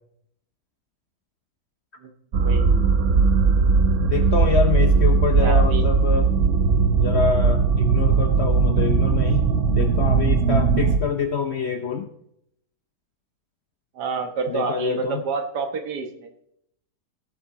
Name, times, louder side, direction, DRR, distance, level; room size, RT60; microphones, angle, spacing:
sound 1, 2.3-11.0, right 4 dB, 50° right, 1.0 m, -19 dB
voice 1, 2.4-2.7 5.4-5.8 14.0-16.3, right 4 dB, 70° right, 6 dB, 1.8 m, -28 dB
voice 2, 4.0-6.3 7.0-9.5 9.7-12.1 14.5-15.2, left 6 dB, 55° left, 6 dB, 0.8 m, -26 dB
17.0 x 7.4 x 3.7 m, 0.74 s
omnidirectional pair, 1.9 m